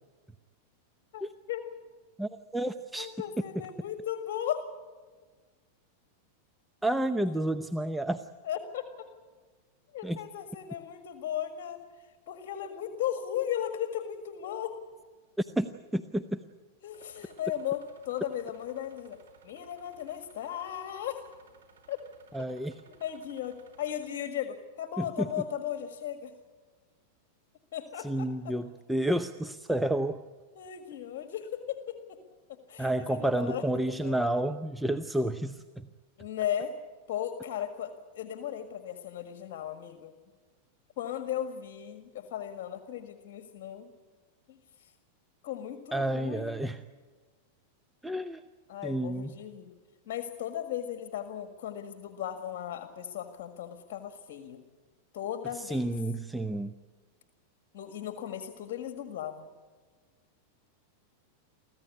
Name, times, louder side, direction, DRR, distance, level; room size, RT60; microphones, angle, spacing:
voice 1, 1.1-1.6 3.0-4.6 7.3-7.6 8.4-9.1 9.9-11.8 12.3-14.8 16.8-19.2 19.4-21.3 21.9-22.0 22.7-26.3 27.7-28.5 30.5-32.2 32.7-33.6 34.0-34.2 36.2-36.7 37.1-40.1 41.0-43.9 44.5-44.9 45.4-46.6 48.7-49.7 50.1-54.6 55.1-55.8 57.7-59.5, left 10 dB, 60° left, 7 dB, 1.8 m, -36 dB
voice 2, 2.2-3.1 6.8-8.3 10.0-10.2 15.4-16.4 22.3-22.8 25.0-25.3 28.0-30.2 32.8-35.9 45.9-46.8 48.0-48.4 48.8-49.3 55.5-56.7, right 1 dB, 5° right, 8 dB, 0.7 m, -30 dB
sound 1, 16.9-24.1, right 6 dB, 80° right, 4.7 m, -60 dB
24.5 x 15.0 x 9.6 m, 1.4 s
hypercardioid pair, 105°, 0 cm